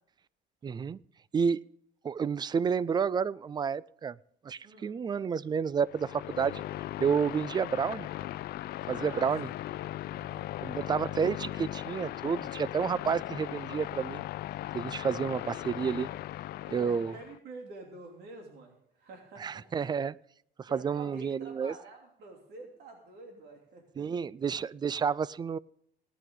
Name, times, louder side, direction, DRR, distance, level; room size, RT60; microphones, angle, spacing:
voice 1, 0.6-1.0 1.3-1.6 2.0-4.2 4.4-6.6 7.0-8.1 8.9-9.5 10.6-14.2 14.7-16.1 16.7-17.1 19.4-20.2 20.6-21.7 24.0-25.6, right 6 dB, 25° right, 22 dB, 0.4 m, -30 dB
sound 1, 5.8-17.4, left 14 dB, 65° left, 0.5 m, -38 dB
voice 2, 8.9-9.3 10.1-10.5 16.7-19.6 20.7-24.1, right 2 dB, 75° right, 2 dB, 2.9 m, -48 dB
18.0 x 10.5 x 3.8 m, 0.72 s
cardioid pair, 110°, 17 cm